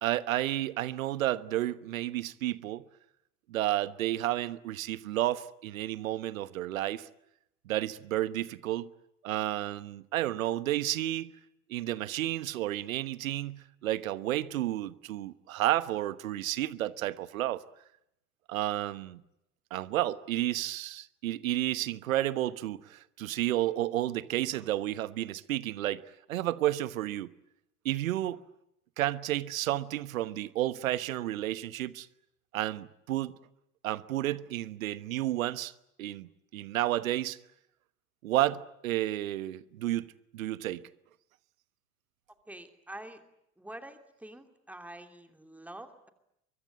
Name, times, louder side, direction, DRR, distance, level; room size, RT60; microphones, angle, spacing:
voice 1, 0.0-2.9 3.5-7.1 7.6-8.9 9.2-11.3 11.7-17.6 18.5-19.2 19.7-27.3 27.8-28.4 29.0-32.1 32.5-33.4 33.8-35.7 36.0-37.4 38.2-40.9, right 14 dB, 65° right, 1.3 m, -31 dB
voice 2, 42.5-43.2 43.6-46.1, right 1 dB, 5° right, 2.8 m, -46 dB
24.0 x 23.5 x 9.8 m
figure-of-eight pair, 75°, 44 cm